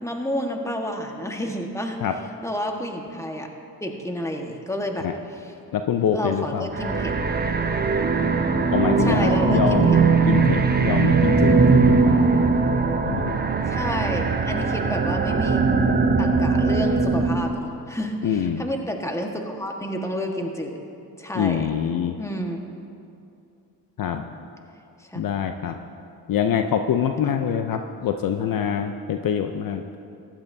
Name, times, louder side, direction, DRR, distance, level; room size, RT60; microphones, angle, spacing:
voice 1, 0.0-2.0 2.4-3.5 3.8-5.1 5.4-5.5 6.1-7.1 9.0-10.0 13.7-15.6 16.2-20.8 21.2-21.7 22.2-22.6 25.0-25.2 27.4-27.5, equal, 5° left, 2 dB, 1.5 m, -30 dB
voice 2, 5.7-6.7 8.7-10.0 10.3-12.2 13.1-13.4 18.2-18.6 21.3-22.2 24.0-24.3 25.1-25.8 26.3-29.8, left 8 dB, 55° left, 6 dB, 0.6 m, -25 dB
sound 1, 6.7-17.5, right 4 dB, 25° right, 0.8 m, -20 dB
15.0 x 11.5 x 2.7 m, 2.5 s
supercardioid pair, 60°, 41 cm